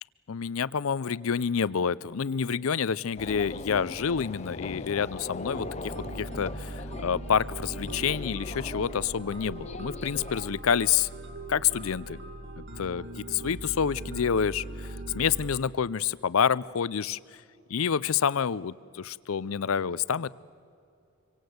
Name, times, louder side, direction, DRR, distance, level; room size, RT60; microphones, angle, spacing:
voice 1, 0.3-11.1 11.5-12.2 12.6-17.2 17.7-20.3, left 7 dB, 75° left, 20 dB, 0.5 m, -28 dB
sound 1, 3.2-10.5, left 3 dB, 30° left, 0.6 m, -40 dB
sound 2, 5.5-15.6, right 1 dB, 55° right, 1.7 m, -40 dB
26.5 x 24.0 x 8.0 m, 2.5 s
head